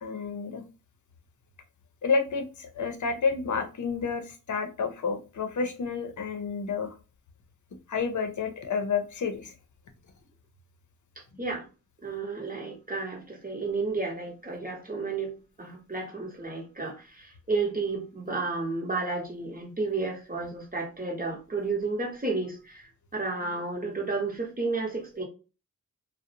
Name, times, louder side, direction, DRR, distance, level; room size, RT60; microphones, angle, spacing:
voice 1, 0.0-0.6 2.0-7.0 7.9-9.5, left 5 dB, 60° left, 7 dB, 0.6 m, -30 dB
voice 2, 12.0-25.2, right 3 dB, 25° right, 0 dB, 0.9 m, -32 dB
2.4 x 2.0 x 2.7 m, 0.32 s
wide cardioid pair, 75°, 34 cm